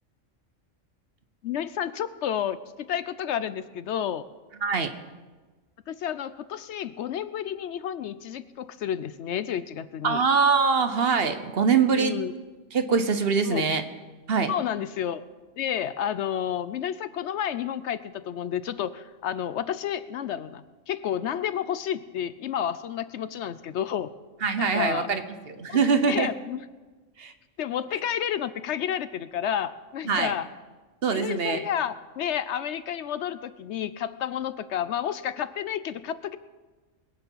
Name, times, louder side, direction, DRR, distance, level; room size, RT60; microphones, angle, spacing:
voice 1, 1.4-4.2 5.9-10.2 11.9-12.3 13.5-13.6 14.5-15.2 15.6-24.1 24.6-25.1 25.7-26.6 27.6-30.5 31.1-36.4, left 9 dB, 70° left, 14 dB, 0.9 m, -31 dB
voice 2, 10.0-12.2 12.7-13.8 14.3-14.5 24.4-25.2 25.5-26.3 27.2-27.3 30.1-30.3 31.0-31.6, right 5 dB, 55° right, 9 dB, 1.1 m, -23 dB
21.5 x 8.4 x 5.7 m, 1.3 s
omnidirectional pair, 1.3 m